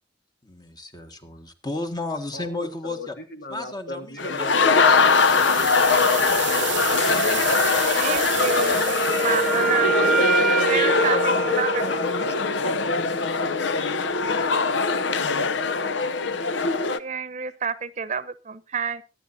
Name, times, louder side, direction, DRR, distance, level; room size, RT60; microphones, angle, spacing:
voice 1, 0.4-3.2 3.5-5.9 6.3-7.6, left 2 dB, 25° left, 7 dB, 1.6 m, -35 dB
voice 2, 2.3-6.7 10.0-13.1, left 3 dB, 65° left, 6 dB, 2.3 m, -34 dB
sound 1, 4.2-17.0, left 4 dB, 85° left, 0.7 m, -22 dB
sound 2, 4.8-9.8, right 15 dB, 85° right, 0.7 m, -31 dB
voice 3, 7.9-8.8 9.2-10.0 10.7-12.1 17.0-19.0, right 6 dB, 40° right, 15 dB, 0.9 m, -29 dB
Wind instrument woodwind instrument, 8.7-12.5, right 4 dB, ahead, 1.0 m, -25 dB
24.0 x 9.9 x 2.7 m, 0.30 s
head